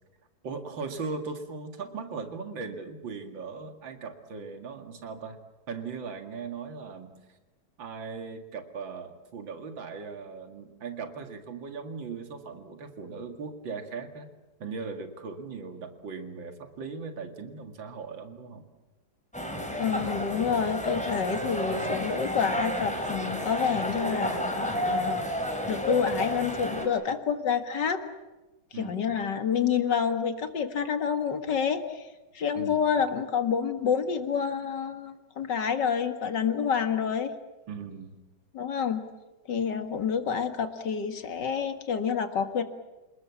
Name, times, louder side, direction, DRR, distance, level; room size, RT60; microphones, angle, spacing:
voice 1, 0.4-5.4 5.7-7.4 7.8-14.3 14.6-18.7 28.7-29.1 32.5-32.9 37.7-38.2, right 5 dB, 75° right, 6 dB, 2.9 m, -38 dB
sound 1, 19.3-26.9, equal, 5° left, 3.6 m, -31 dB
voice 2, 19.8-25.2 25.7-28.0 28.8-32.1 32.3-37.3 38.5-39.0 39.5-42.6, left 7 dB, 65° left, 8 dB, 2.4 m, -28 dB
28.0 x 20.5 x 7.3 m, 1.1 s
omnidirectional pair, 2.1 m